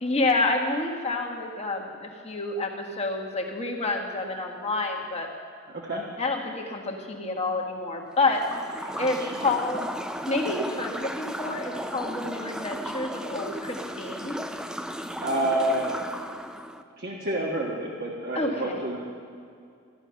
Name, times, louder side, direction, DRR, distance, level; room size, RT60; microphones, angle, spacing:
voice 1, 0.0-5.3 6.2-9.9 10.3-14.4 18.3-18.8, left 2 dB, 30° left, 1 dB, 1.6 m, -28 dB
voice 2, 5.7-6.0 8.9-9.4 15.2-15.9 17.0-19.1, right 1 dB, 50° right, -2 dB, 1.5 m, -29 dB
sound 1, 8.2-16.8, equal, 5° right, 0.5 m, -35 dB
14.5 x 11.0 x 5.9 m, 2.4 s
head